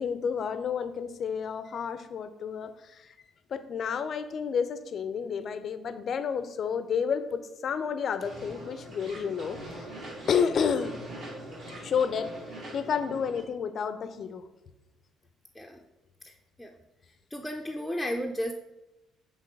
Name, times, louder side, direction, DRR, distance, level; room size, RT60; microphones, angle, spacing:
voice 1, 0.0-3.1 3.5-9.9 10.3-11.0 11.8-12.3 12.7-14.4, left 6 dB, 50° left, 11 dB, 0.5 m, -30 dB
sound 1, 8.2-13.4, right 1 dB, 55° right, 2.1 m, -42 dB
voice 2, 17.3-18.5, equal, 5° left, 1 dB, 0.5 m, -33 dB
6.5 x 3.7 x 4.8 m, 0.95 s
figure-of-eight pair, 45°, 0 cm